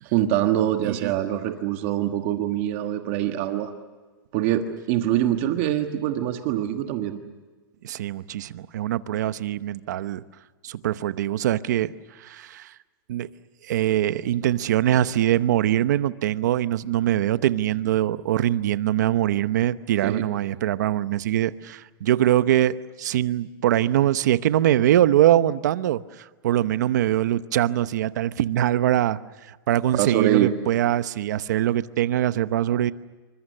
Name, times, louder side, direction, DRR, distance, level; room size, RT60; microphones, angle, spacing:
voice 1, 0.0-3.7 4.3-7.2 20.0-20.2 29.9-30.5, right 12 dB, 30° right, 6 dB, 1.4 m, -24 dB
voice 2, 7.8-10.2 10.6-12.7 13.1-13.3 13.6-29.2 29.5-32.9, right 12 dB, 50° right, 14 dB, 0.9 m, -23 dB
28.0 x 24.5 x 6.7 m, 1.3 s
supercardioid pair, 180°, 12 cm